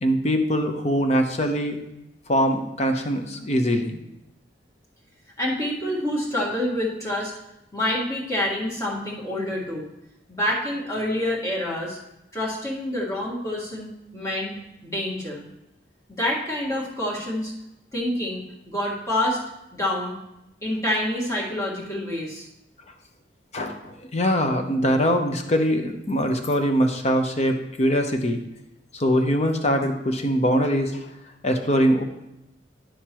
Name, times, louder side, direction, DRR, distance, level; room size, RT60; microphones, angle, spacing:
voice 1, 0.0-1.8 2.3-4.0 23.5-28.4 28.9-31.0 31.4-32.0, equal, 40° left, 5 dB, 0.8 m, -22 dB
voice 2, 5.4-7.3 7.7-9.9 10.3-12.0 12.3-14.5 14.8-15.4 16.1-17.5 17.9-19.4 19.7-20.1 20.6-22.5, left 1 dB, 20° left, -4 dB, 1.6 m, -27 dB
10.5 x 6.6 x 3.0 m, 0.89 s
head